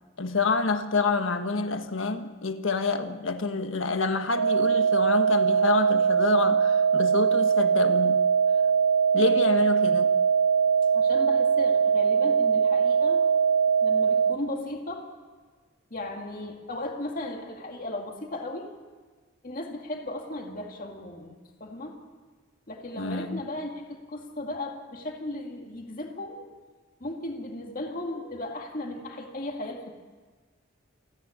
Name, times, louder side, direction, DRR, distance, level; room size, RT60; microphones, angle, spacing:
voice 1, 0.2-8.2 9.1-10.1 23.0-23.4, left 3 dB, 80° left, 1.4 m, -27 dB
sound 1, 4.4-14.4, right 6 dB, 65° right, 0.7 m, -22 dB
voice 2, 10.9-13.2 13.8-15.1 15.9-18.7 19.4-22.0 22.7-26.5 27.0-29.9, left 1 dB, 45° left, 2.1 m, -36 dB
28.5 x 10.0 x 9.9 m
head